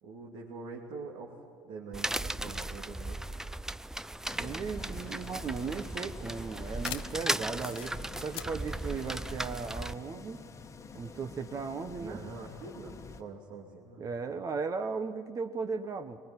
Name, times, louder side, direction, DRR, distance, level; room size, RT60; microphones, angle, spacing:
voice 1, 0.0-3.2 12.0-14.1, right 4 dB, 75° right, -2 dB, 2.8 m, -44 dB
sound 1, 1.9-9.9, right 1 dB, 5° right, 0.5 m, -37 dB
sound 2, 4.3-13.2, left 4 dB, 35° left, 1.4 m, -48 dB
voice 2, 4.4-7.9 8.2-10.4 10.9-12.2 14.0-16.2, right 5 dB, 40° right, 8 dB, 1.1 m, -36 dB
sound 3, 6.8-10.1, left 15 dB, 70° left, 0.7 m, -46 dB
22.5 x 20.0 x 9.8 m, 2.4 s
supercardioid pair, 85°, 9 cm